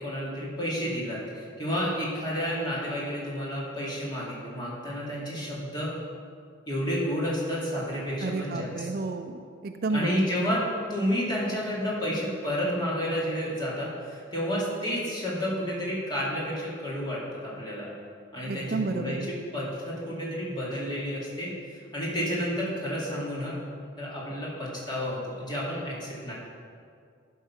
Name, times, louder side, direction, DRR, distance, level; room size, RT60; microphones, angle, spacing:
voice 1, 0.0-5.9 6.7-8.9 9.9-10.6 10.9-17.9 18.3-23.6 24.0-26.3, equal, 20° left, -6 dB, 2.3 m, -31 dB
voice 2, 8.2-10.2 18.5-19.3, right 3 dB, 45° right, 7 dB, 0.4 m, -31 dB
12.0 x 5.6 x 5.8 m, 2.3 s
head